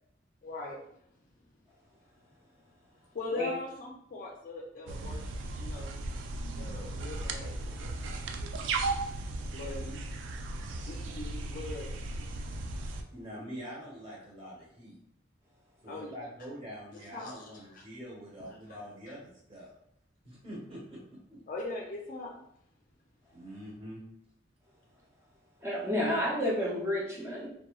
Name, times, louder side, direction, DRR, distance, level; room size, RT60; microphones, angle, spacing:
voice 1, 0.4-0.8 3.1-5.3 5.6-5.9 6.6-7.7 9.5-10.0 10.6-11.9 15.9-16.1 16.9-17.8 18.4-18.8 21.5-22.3, left 2 dB, 45° left, 0 dB, 0.4 m, -40 dB
sound 1, 4.9-13.0, right 2 dB, 75° right, 0.3 m, -36 dB
voice 2, 13.1-15.0 15.8-19.7 20.2-21.4 23.3-24.0, equal, 30° right, -5 dB, 1.1 m, -45 dB
voice 3, 25.6-27.5, left 1 dB, 15° right, -4 dB, 0.5 m, -30 dB
2.9 x 2.2 x 2.3 m, 0.73 s
head